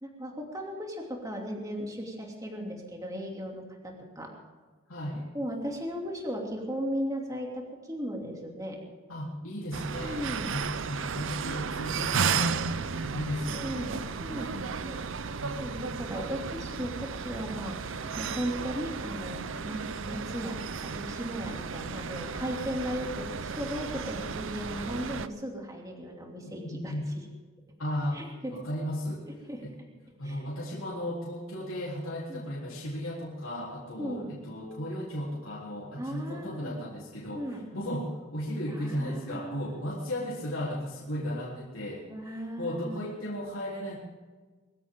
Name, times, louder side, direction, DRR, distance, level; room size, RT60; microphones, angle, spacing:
voice 1, 0.0-4.3 5.3-8.8 10.0-10.6 13.4-17.8 18.2-26.9 28.1-28.6 29.5-29.6 30.2-30.4 32.3-32.4 34.0-34.4 36.0-36.8 37.3-37.6 38.8-39.7 42.1-43.0, equal, 15° right, 0 dB, 2.8 m, -36 dB
voice 2, 4.9-5.3 9.1-14.6 15.4-15.5 26.6-27.1 27.8-28.2 28.5-29.3 29.6-29.7 30.2-44.0, equal, 85° left, -5 dB, 3.6 m, -35 dB
sound 1, 9.7-25.3, right 5 dB, 70° right, 0.7 m, -34 dB
22.0 x 15.0 x 3.8 m, 1.4 s
head